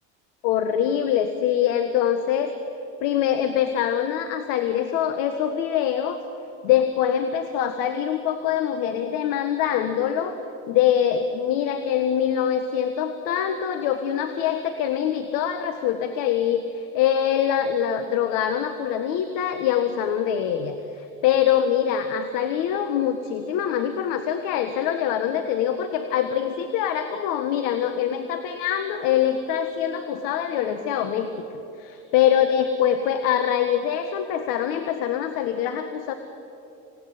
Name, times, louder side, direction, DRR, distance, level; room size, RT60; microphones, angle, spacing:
voice 1, 0.4-2.5 3.0-6.2 6.6-10.3 10.7-31.3 32.1-36.1, left 9 dB, 70° left, 8 dB, 1.6 m, -24 dB
27.0 x 18.0 x 9.6 m, 2.8 s
cardioid pair, 130°, 34 cm